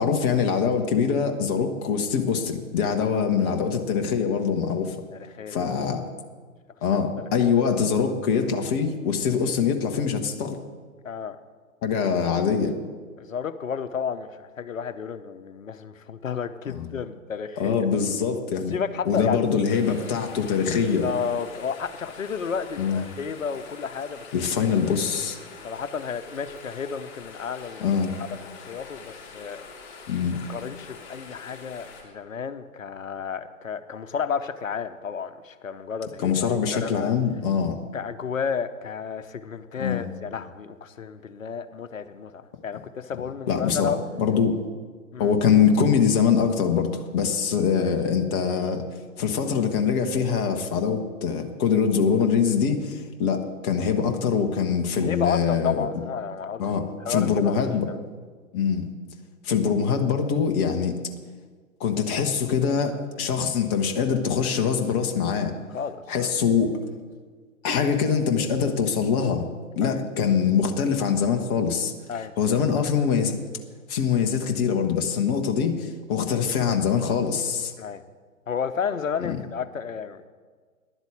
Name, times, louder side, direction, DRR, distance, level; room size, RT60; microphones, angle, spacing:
voice 1, 0.0-5.0 5.5-6.0 6.8-10.6 11.8-12.8 16.7-16.9 17.6-18.7 19.1-21.1 22.8-23.0 24.3-25.4 27.8-28.2 30.1-30.4 36.2-37.8 39.8-40.1 43.5-43.9 44.2-44.6 45.2-48.8 49.2-55.9 56.6-56.8 57.1-57.9 58.5-58.9 59.4-61.0 61.8-65.5 66.1-66.8 67.6-69.5 69.8-71.9 72.4-73.4 73.9-77.7 79.2-79.4, left 6 dB, 15° left, 4 dB, 0.7 m, -23 dB
voice 2, 5.1-5.7 7.4-7.5 11.0-11.4 13.2-17.9 18.7-19.4 21.0-24.3 25.6-27.9 28.7-29.7 30.5-37.1 37.9-44.0 45.1-45.3 47.8-47.9 55.0-56.6 57.0-58.0 65.7-66.3 69.8-70.0 72.1-72.3 77.8-78.0 78.5-80.3, left 6 dB, 65° left, 11 dB, 0.8 m, -32 dB
sound 1, 19.7-32.0, left 5 dB, 40° left, 3.9 m, -44 dB
11.0 x 8.1 x 7.9 m, 1.5 s
figure-of-eight pair, 120°, 43 cm